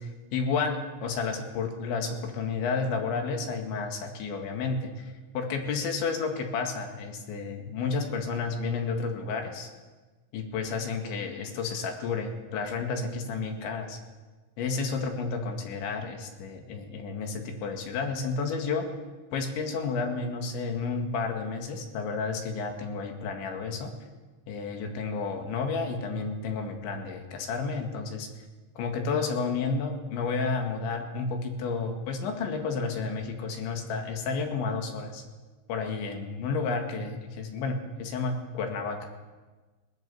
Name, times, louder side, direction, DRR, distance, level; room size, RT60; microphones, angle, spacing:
voice 1, 0.0-9.7 10.3-14.0 14.6-18.9 19.3-23.9 24.5-28.3 28.8-35.2 35.7-39.1, left 4 dB, 65° left, 3 dB, 4.1 m, -31 dB
20.0 x 18.5 x 7.1 m, 1.3 s
omnidirectional pair, 5.8 m